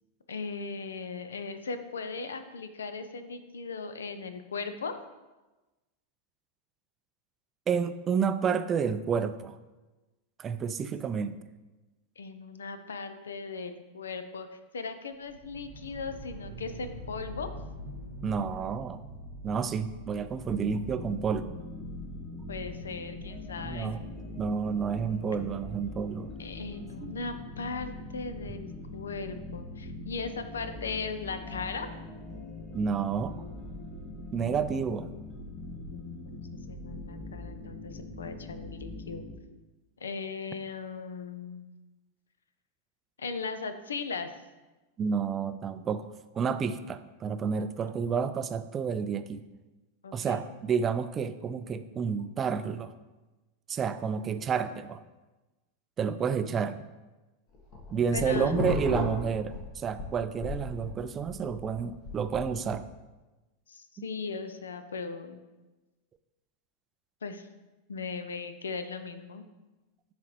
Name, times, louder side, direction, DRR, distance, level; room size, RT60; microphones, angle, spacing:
voice 1, 0.3-5.0 12.2-14.5 14.7-17.5 22.5-23.9 26.4-31.9 35.9-39.2 40.0-41.7 43.2-44.3 50.0-50.4 58.1-58.6 63.7-65.4 67.2-67.5 67.9-69.4, left 4 dB, 70° left, 10 dB, 0.5 m, -38 dB
voice 2, 7.7-9.6 10.4-11.4 18.2-19.0 19.4-21.6 23.6-24.0 24.4-26.3 27.0-27.1 32.7-33.4 34.3-35.1 45.0-46.1 46.3-49.4 50.1-52.9 53.7-55.0 56.0-56.8 57.9-62.9, right 6 dB, 25° right, 11 dB, 0.4 m, -30 dB
sound 1, 15.3-25.2, equal, 60° right, 1.0 m, -45 dB
sound 2, 20.4-39.4, left 2 dB, 15° left, 2.0 m, -42 dB
sound 3, 57.5-60.1 60.4-62.8, left 2 dB, 40° left, 1.2 m, -34 dB
9.3 x 4.0 x 3.1 m, 1.1 s
figure-of-eight pair, 90°, 0 cm